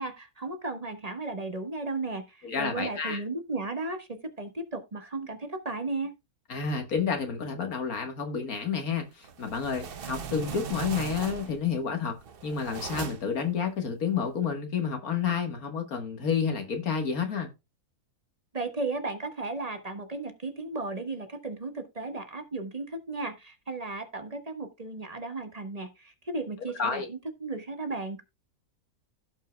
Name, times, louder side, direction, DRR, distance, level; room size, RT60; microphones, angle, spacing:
voice 1, 0.0-6.1 18.5-28.2, right 3 dB, 25° right, 1.3 m, -35 dB
voice 2, 2.4-3.2 6.5-12.2 12.4-17.5 26.8-27.1, left 6 dB, 70° left, 1.9 m, -30 dB
sound 1, 9.2-11.7 12.2-13.4, right 7 dB, 45° right, 0.8 m, -38 dB
16.5 x 5.5 x 2.2 m
omnidirectional pair, 1.6 m